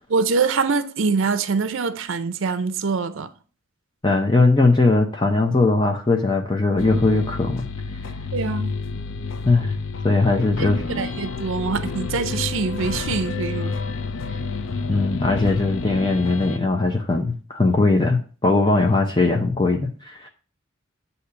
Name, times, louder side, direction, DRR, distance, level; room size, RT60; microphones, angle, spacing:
voice 1, 0.1-3.3 8.3-8.7 10.9-13.7, right 4 dB, 70° right, 0.5 m, -24 dB
voice 2, 4.0-7.7 9.4-9.7 10.0-10.8 14.9-20.3, left 3 dB, 20° left, 0.6 m, -20 dB
sound 1, 6.8-16.6, left 4 dB, 75° left, 0.5 m, -29 dB
8.2 x 2.8 x 5.7 m
head